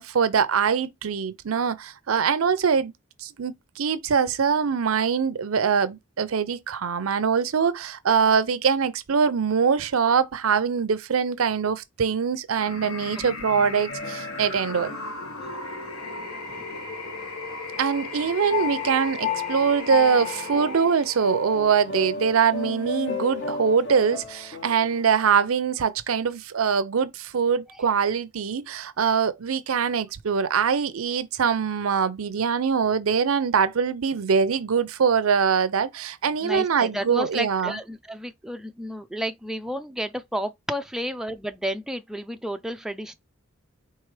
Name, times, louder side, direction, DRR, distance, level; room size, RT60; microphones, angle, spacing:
voice 1, 0.0-2.9 3.2-15.0 17.8-37.8, right 6 dB, 80° right, 0.6 m, -23 dB
sound 1, 12.5-21.6, left 3 dB, 85° left, 1.7 m, -36 dB
sound 2, 13.9-17.4 17.7-25.0, left 6 dB, 55° left, 1.2 m, -34 dB
voice 2, 36.4-43.2, equal, 5° right, 0.3 m, -32 dB
4.7 x 3.3 x 3.2 m
head